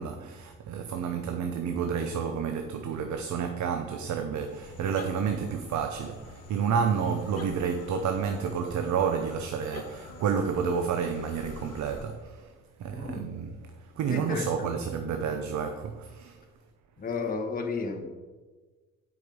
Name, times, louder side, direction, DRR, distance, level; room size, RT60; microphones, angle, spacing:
voice 1, 0.0-16.4, right 6 dB, 70° right, 0.7 m, -30 dB
sound 1, 4.3-12.2, left 4 dB, 55° left, 1.3 m, -47 dB
voice 2, 12.9-13.3 14.1-14.7 17.0-18.1, left 4 dB, 30° left, 1.0 m, -33 dB
8.0 x 5.3 x 5.2 m
cardioid pair, 90°, 30 cm